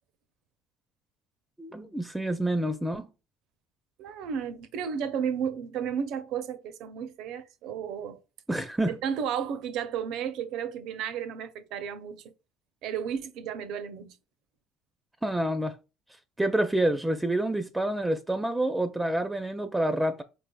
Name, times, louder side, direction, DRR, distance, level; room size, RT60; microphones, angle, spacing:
voice 1, 1.6-3.1 8.5-9.0 15.2-15.8 16.4-20.2, right 1 dB, 10° right, 0.4 m, -28 dB
voice 2, 4.0-8.2 9.0-12.2 12.8-14.1, right 7 dB, 70° right, 0.5 m, -33 dB
4.6 x 3.3 x 2.2 m
supercardioid pair, 90°, 0 cm